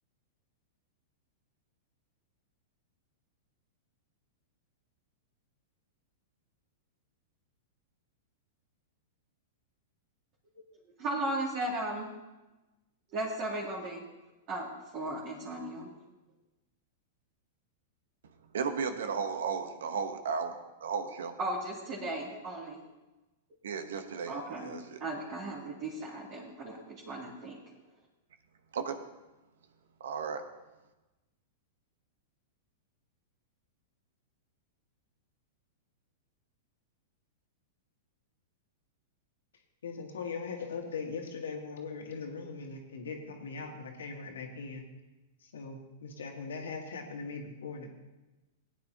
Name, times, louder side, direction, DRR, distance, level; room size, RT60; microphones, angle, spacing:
voice 1, 11.0-12.1 13.1-14.0 14.5-14.7 14.9-16.0 21.4-22.8 24.3-24.7 25.0-27.6, right 1 dB, 45° right, -7 dB, 2.8 m, -36 dB
voice 2, 18.5-20.6 20.8-21.4 23.6-25.0 28.7-29.0 30.0-30.4, right 6 dB, 75° right, 8 dB, 1.1 m, -34 dB
voice 3, 39.8-44.8 45.4-47.9, left 4 dB, 80° left, 2 dB, 2.0 m, -40 dB
17.5 x 9.6 x 2.9 m, 1.1 s
hypercardioid pair, 115°, 0 cm